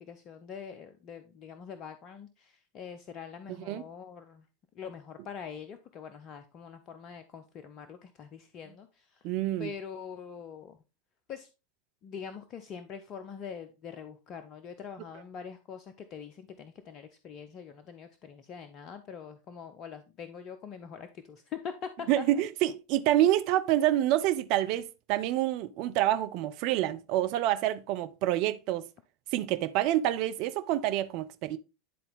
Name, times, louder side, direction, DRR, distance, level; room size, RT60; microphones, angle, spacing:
voice 1, 0.1-4.5 4.7-9.3 9.6-10.8 11.3-11.5 12.0-22.2, left 7 dB, 40° left, 0.6 m, -44 dB
voice 2, 3.5-3.8 9.2-9.7 22.1-28.9 29.3-31.6, right 13 dB, 50° right, 0.5 m, -27 dB
10.5 x 3.9 x 3.4 m
figure-of-eight pair, 85°, 0 cm